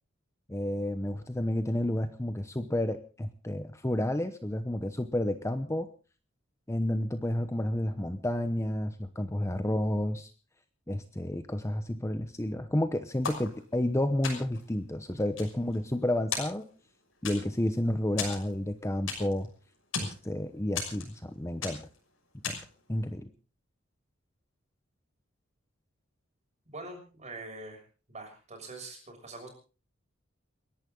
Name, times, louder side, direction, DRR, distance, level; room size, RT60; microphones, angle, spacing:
voice 1, 0.5-5.9 6.7-10.3 10.9-16.6 17.2-19.5 20.0-21.9 22.5-22.6 22.9-23.3, left 1 dB, 15° left, 9 dB, 0.9 m, -31 dB
sound 1, 13.2-13.9 14.2-14.7 15.2-16.0 16.3-16.9 17.3-17.7 18.2-19.5 19.7-20.2 20.8-21.3 21.6-22.0 22.4-22.8, left 5 dB, 75° left, 6.2 m, -36 dB
voice 2, 26.7-27.8 28.1-29.5, right 2 dB, 35° right, 3 dB, 6.5 m, -44 dB
29.5 x 11.5 x 3.9 m, 0.36 s
head